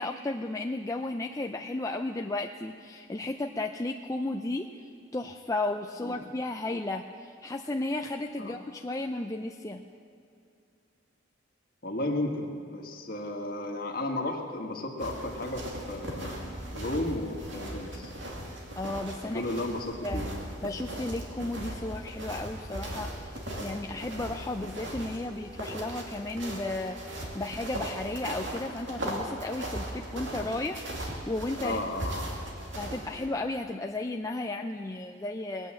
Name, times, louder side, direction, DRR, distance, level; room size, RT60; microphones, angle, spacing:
voice 1, 0.0-9.8 18.8-19.4 20.0-20.2 20.6-31.8 32.8-35.7, left 2 dB, 15° left, 3 dB, 0.4 m, -34 dB
voice 2, 11.8-18.1 19.2-20.4 31.6-32.3, left 1 dB, 50° left, 1 dB, 1.8 m, -34 dB
sound 1, 15.0-33.2, right 1 dB, 70° right, 2.5 m, -38 dB
sound 2, 15.7-31.6, left 1 dB, 25° right, 3.3 m, -54 dB
20.5 x 9.1 x 7.5 m, 2.5 s
head